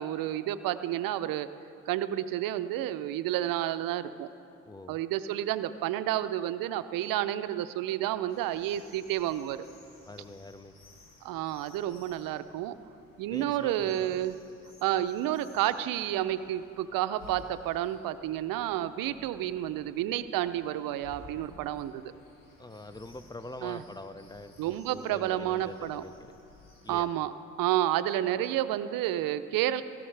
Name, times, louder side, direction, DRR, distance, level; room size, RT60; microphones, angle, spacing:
voice 1, 0.0-1.5 1.9-4.3 4.9-9.6 11.2-12.7 13.2-14.4 14.8-22.1 23.6-23.8 24.6-26.0 26.9-27.3 27.6-29.8, right 13 dB, 70° right, 12 dB, 0.6 m, -30 dB
voice 2, 4.6-5.0 10.1-10.8 13.3-14.2 22.6-26.3 26.8-27.1, left 2 dB, 10° left, 12 dB, 0.6 m, -44 dB
sound 1, 8.3-27.0, left 2 dB, 65° left, 2.3 m, -57 dB
16.5 x 13.5 x 3.3 m, 2.6 s
hypercardioid pair, 50°, 35 cm